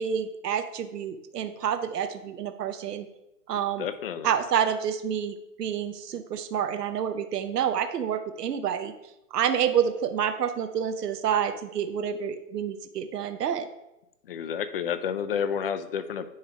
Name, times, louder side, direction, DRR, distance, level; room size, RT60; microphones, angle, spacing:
voice 1, 0.0-3.1 3.5-3.9 4.2-8.9 9.3-13.7, right 8 dB, 80° right, 8 dB, 0.8 m, -28 dB
voice 2, 3.8-4.3 14.2-16.3, left 7 dB, 40° left, 11 dB, 0.5 m, -30 dB
9.5 x 3.2 x 5.0 m, 0.88 s
hypercardioid pair, 140°, 47 cm